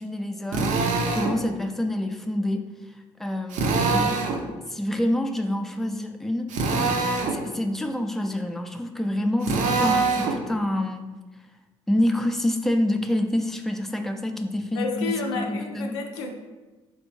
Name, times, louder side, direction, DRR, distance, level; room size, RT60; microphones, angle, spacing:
voice 1, 0.0-4.2 4.7-7.0 7.3-11.1 11.9-16.0, left 1 dB, ahead, 5 dB, 0.4 m, -27 dB
Drill, 0.5-1.4 3.5-4.4 6.5-7.4 9.4-10.4, right 3 dB, 60° right, 0.6 m, -24 dB
voice 2, 14.8-16.3, left 3 dB, 85° left, 3 dB, 0.5 m, -30 dB
3.5 x 3.3 x 3.2 m, 1.2 s
hypercardioid pair, 55°, 14 cm